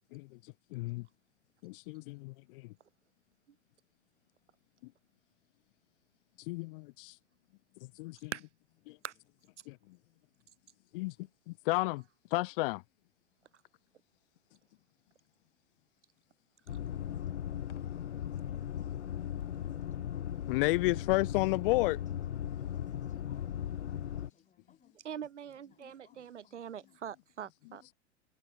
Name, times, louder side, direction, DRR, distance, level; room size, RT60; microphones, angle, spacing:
voice 1, 0.1-1.1 1.6-2.7 6.4-7.2 8.0-8.3 8.9-9.0 9.7-9.8 10.9-11.1 11.5-12.0 12.3-12.8 20.5-22.0, left 24 dB, 50° left, 1.3 m, -32 dB
sound 1, 16.7-24.3, left 10 dB, 70° left, 1.8 m, -37 dB
voice 2, 17.1-17.4 18.1-19.0 19.6-20.3 22.3-25.2 25.5-27.0 27.7-27.9, left 7 dB, 20° left, 6.8 m, -69 dB
voice 3, 25.0-27.8, right 9 dB, 75° right, 2.4 m, -43 dB
figure-of-eight pair, 100°, 36 cm